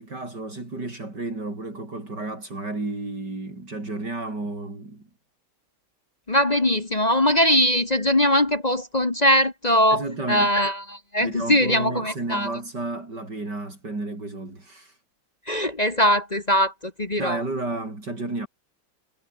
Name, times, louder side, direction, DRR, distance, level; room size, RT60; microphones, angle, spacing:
voice 1, 0.0-5.1 9.9-10.5 11.2-14.9 17.2-18.5, right 2 dB, 60° right, 6.5 m, -32 dB
voice 2, 6.3-12.5 15.4-17.4, left 1 dB, 25° left, 1.5 m, -21 dB
omnidirectional pair, 2.1 m